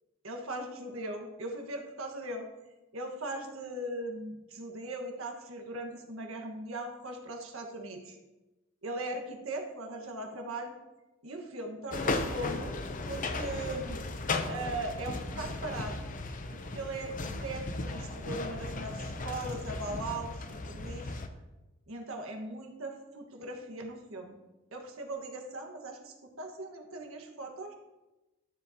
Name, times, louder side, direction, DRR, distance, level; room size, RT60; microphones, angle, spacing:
voice 1, 0.2-2.5 2.9-8.2 8.8-10.7 11.2-12.7 13.1-14.0 14.5-16.0 16.5-21.2 21.9-24.4 24.7-27.7, right 2 dB, 85° right, 2 dB, 1.5 m, -39 dB
sound 1, 11.9-21.3, left 3 dB, 40° left, 0.7 m, -36 dB
12.5 x 7.3 x 2.9 m, 1.1 s
head